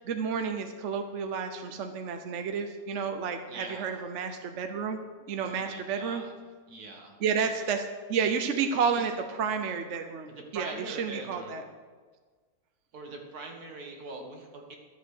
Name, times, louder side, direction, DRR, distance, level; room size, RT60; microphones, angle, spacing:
voice 1, 0.0-5.0 5.3-6.2 7.2-11.6, right 6 dB, 55° right, 6 dB, 1.1 m, -31 dB
voice 2, 3.5-4.0 5.4-6.3 6.7-7.2 9.0-9.1 10.3-11.6 12.9-14.8, right 3 dB, 80° right, 1 dB, 2.1 m, -42 dB
13.0 x 7.3 x 6.5 m, 1.5 s
omnidirectional pair, 1.6 m